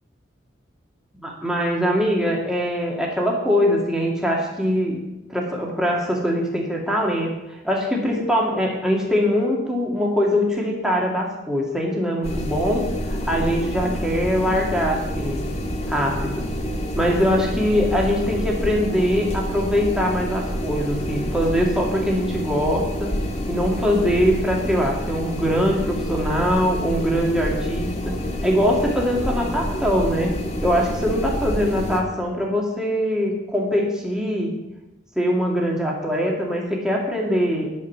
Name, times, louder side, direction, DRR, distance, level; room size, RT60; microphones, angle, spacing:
voice 1, 1.2-5.0 5.3-7.3 7.6-15.4 15.9-16.5 17.0-23.1 23.5-30.3 30.6-34.5 35.2-37.7, equal, 5° right, -2 dB, 2.3 m, -22 dB
sound 1, 12.2-32.0, equal, 35° left, 1.8 m, -28 dB
13.0 x 5.5 x 9.4 m, 0.97 s
head